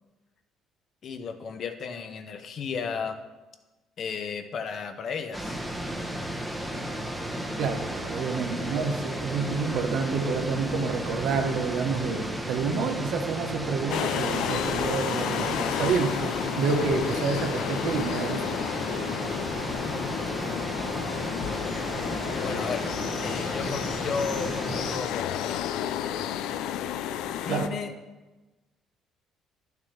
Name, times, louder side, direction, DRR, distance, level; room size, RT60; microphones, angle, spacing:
voice 1, 1.0-3.2 4.0-5.6 19.8-20.3 22.4-22.9 23.2-25.6 27.5-27.9, left 5 dB, 50° left, 7 dB, 0.8 m, -34 dB
sound 1, 5.3-25.0, right 1 dB, 5° right, 0.9 m, -33 dB
voice 2, 7.6-18.6 27.5-27.7, right 5 dB, 70° right, 5 dB, 1.1 m, -29 dB
sound 2, 13.9-27.7, left 10 dB, 85° left, 0.4 m, -31 dB
11.0 x 6.6 x 3.4 m, 1.2 s
cardioid pair, 120°, 0 cm